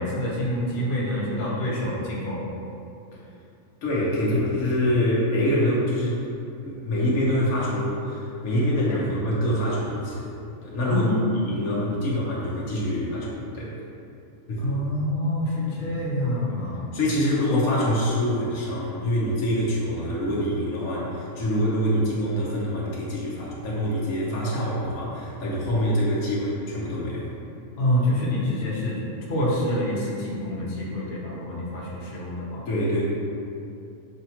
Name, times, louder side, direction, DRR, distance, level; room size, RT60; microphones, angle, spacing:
voice 1, 0.0-2.4 8.9-9.0 10.8-11.6 14.6-16.8 27.8-29.0 29.3-32.6, left 1 dB, 50° left, -6 dB, 1.0 m, -27 dB
voice 2, 3.8-6.2 6.6-10.3 10.6-13.7 14.5-14.8 15.8-16.0 16.9-27.3 32.7-33.0, equal, 80° left, -6 dB, 1.3 m, -25 dB
6.4 x 2.2 x 2.9 m, 2.6 s
omnidirectional pair, 1.5 m